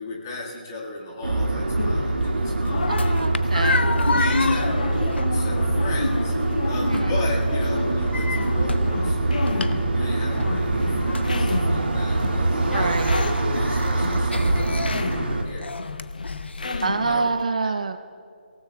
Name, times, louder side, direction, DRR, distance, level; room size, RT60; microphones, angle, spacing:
voice 1, 0.0-3.2 4.1-6.3 6.7-9.6 9.9-15.7 16.6-17.3 17.6-17.8, left 2 dB, 20° left, -3 dB, 1.8 m, -35 dB
sound 1, 1.2-15.4, right 2 dB, 80° right, 2.0 m, -23 dB
sound 2, 1.8-17.4, left 4 dB, 50° left, 0.6 m, -32 dB
sound 3, 2.2-17.2, left 3 dB, 85° left, 0.8 m, -32 dB
voice 2, 2.9-3.9 6.8-7.1 12.7-13.2 16.8-18.0, right 4 dB, 40° right, 11 dB, 0.5 m, -26 dB
30.0 x 17.0 x 2.3 m, 2.3 s
hypercardioid pair, 175°, 6 cm